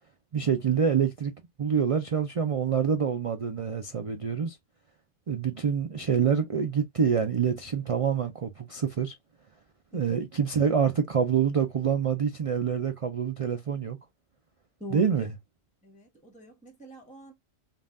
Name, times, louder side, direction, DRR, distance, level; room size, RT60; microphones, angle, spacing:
voice 1, 0.3-1.3 1.6-4.6 5.3-9.1 9.9-14.0 14.9-15.4, right 7 dB, 60° right, 0.3 m, -26 dB
voice 2, 9.9-10.2 14.8-15.3 15.8-17.3, equal, 5° left, 1.0 m, -42 dB
5.3 x 2.5 x 2.5 m
omnidirectional pair, 1.3 m